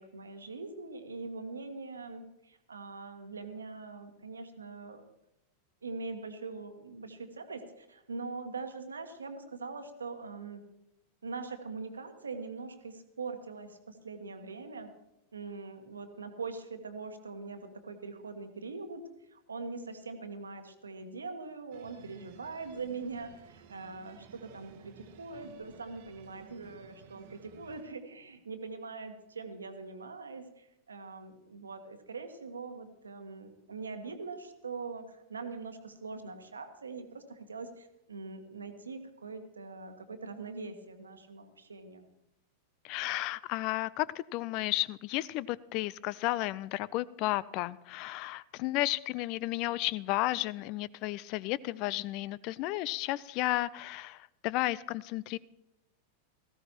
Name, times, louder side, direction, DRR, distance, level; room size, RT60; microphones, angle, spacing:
voice 1, 0.0-5.0 5.8-10.6 11.2-14.9 15.3-19.0 19.3-42.1, right 4 dB, 75° right, 8 dB, 1.3 m, -42 dB
sound 1, 21.7-27.8, right 8 dB, 50° right, 1.1 m, -55 dB
voice 2, 42.8-55.4, left 17 dB, 40° left, 22 dB, 0.4 m, -33 dB
17.5 x 15.0 x 3.0 m, 0.89 s
figure-of-eight pair, 90°, 0 cm